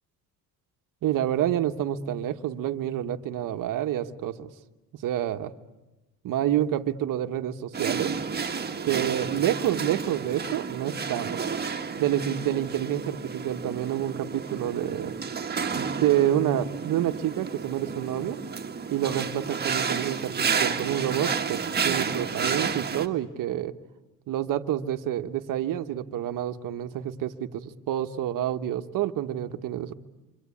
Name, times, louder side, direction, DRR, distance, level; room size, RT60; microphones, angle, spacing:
voice 1, 1.0-4.5 4.9-5.5 6.2-8.1 8.8-11.5 12.0-15.1 15.7-18.4 18.9-23.7 24.3-29.9, right 11 dB, 65° right, 8 dB, 1.3 m, -28 dB
sound 1, 7.7-23.1, right 6 dB, 30° right, 1.7 m, -31 dB
28.5 x 24.5 x 8.5 m, 1.1 s
cardioid pair, 105°, 35 cm